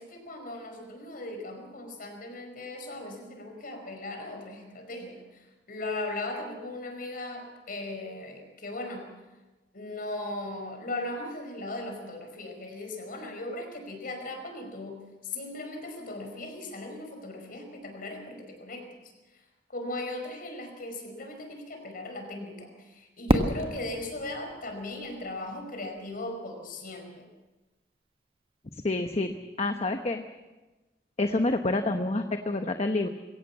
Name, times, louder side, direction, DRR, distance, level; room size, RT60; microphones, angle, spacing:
voice 1, 0.0-9.1 9.7-15.0 15.2-18.8 19.7-27.2, left 2 dB, 55° left, 4 dB, 5.0 m, -38 dB
Fireworks, 23.3-26.1, right 1 dB, 30° right, 1.5 m, -30 dB
voice 2, 28.8-30.2 31.2-33.1, left 2 dB, 35° left, 6 dB, 1.0 m, -28 dB
22.0 x 17.5 x 7.3 m, 1.1 s
head